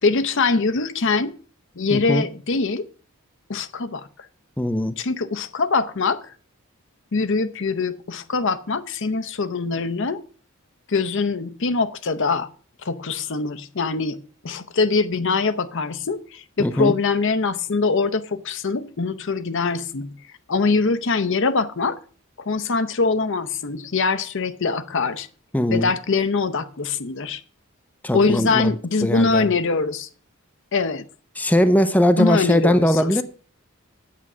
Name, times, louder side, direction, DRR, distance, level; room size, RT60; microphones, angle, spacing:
voice 1, 0.0-1.3 1.8-2.9 3.5-4.1 5.0-6.3 7.1-10.2 10.9-12.5 12.8-14.2 14.4-20.1 20.5-22.0 22.5-25.3 25.7-27.4 28.1-30.1 30.7-31.0 32.2-33.2, left 4 dB, 60° left, 0.8 m, -23 dB
voice 2, 1.9-2.2 4.6-4.9 16.6-16.9 25.5-25.9 28.0-28.7 29.0-29.5 31.4-33.2, equal, 10° left, 0.6 m, -20 dB
8.6 x 8.1 x 6.1 m
head